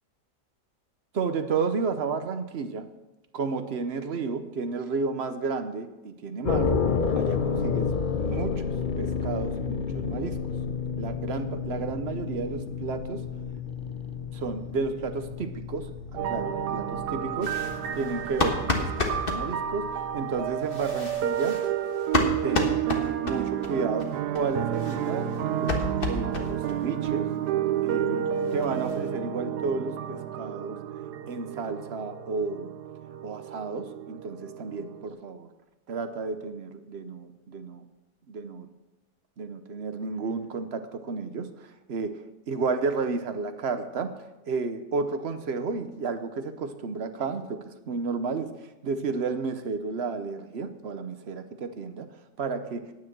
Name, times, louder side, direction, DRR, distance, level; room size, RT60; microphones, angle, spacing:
voice 1, 1.1-2.9 3.3-6.8 7.1-7.9 8.2-10.4 11.0-13.2 14.3-17.6 17.9-21.6 22.4-22.8 23.2-25.8 26.0-27.3 27.8-30.8 31.3-32.7 33.2-35.5 35.9-37.8 38.3-38.7 39.4-44.2 44.5-52.1 52.4-52.9, right 4 dB, 50° right, 9 dB, 0.9 m, -32 dB
sound 1, 6.4-21.2, left 5 dB, 65° left, 0.4 m, -31 dB
sound 2, 16.2-35.1, right 10 dB, 75° right, 1.2 m, -31 dB
sound 3, 17.4-19.4 20.6-23.7 24.0-24.1 24.3-24.4 24.7-26.8 27.0-27.1 27.5-27.6 27.9-28.0 28.3-29.1, left 3 dB, 35° left, 1.4 m, -31 dB
9.6 x 9.6 x 6.1 m, 1.0 s
omnidirectional pair, 1.8 m